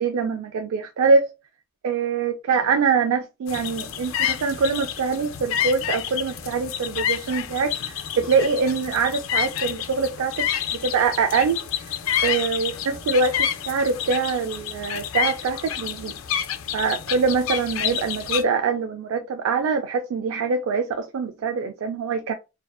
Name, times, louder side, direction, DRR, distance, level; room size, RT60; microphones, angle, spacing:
voice 1, 0.0-1.3 1.8-10.5 10.7-11.6 12.2-16.1 16.7-22.3, right 5 dB, 75° right, 0.3 m, -24 dB
sound 1, 3.5-18.4, left 9 dB, 70° left, 0.4 m, -29 dB
2.5 x 2.4 x 2.2 m
head